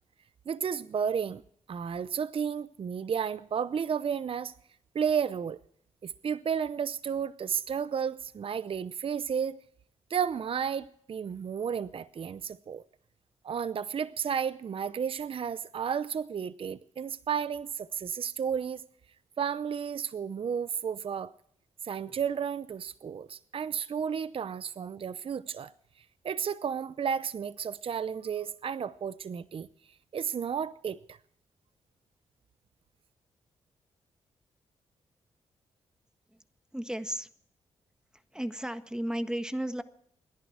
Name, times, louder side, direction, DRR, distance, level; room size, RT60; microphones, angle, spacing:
voice 1, 0.5-1.4 1.7-4.5 4.9-5.6 6.0-9.6 10.1-12.8 13.4-18.8 19.4-21.3 21.8-25.7 26.2-29.7 30.1-31.2, right 7 dB, 50° right, 0.7 m, -32 dB
voice 2, 36.7-37.3 38.1-39.8, equal, 5° right, 1.6 m, -34 dB
28.0 x 11.0 x 4.7 m
cardioid pair, 60°, 12 cm